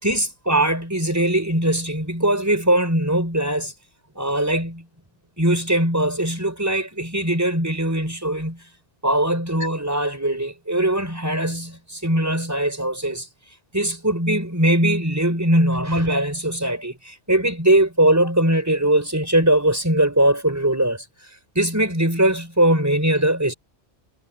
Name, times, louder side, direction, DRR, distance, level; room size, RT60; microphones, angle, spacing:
voice 1, 0.0-3.7 4.2-4.9 5.4-8.6 9.0-13.3 13.7-21.0 21.6-23.5, right 1 dB, 15° right, 5.4 m, -21 dB
omnidirectional pair, 1.2 m